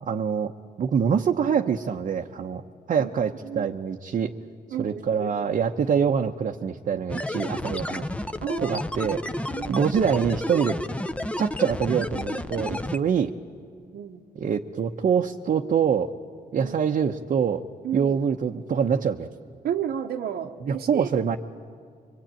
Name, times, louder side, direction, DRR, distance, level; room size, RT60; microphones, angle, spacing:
voice 1, 0.0-0.5 0.8-2.6 2.9-4.3 4.8-8.1 8.6-10.8 11.4-13.3 14.4-16.1 16.5-17.6 17.9-19.3 20.6-21.4, right 7 dB, 50° right, 2 dB, 0.9 m, -25 dB
voice 2, 4.7-5.5 8.4-8.8 9.1-9.2 9.5-9.9 13.9-14.2 16.6-16.7 17.8-18.2 19.6-21.1, right 9 dB, 75° right, 2 dB, 1.1 m, -32 dB
sound 1, 7.1-13.0, left 1 dB, 10° left, 0.8 m, -31 dB
24.5 x 24.0 x 9.0 m, 2.2 s
cardioid pair, 100°, 17 cm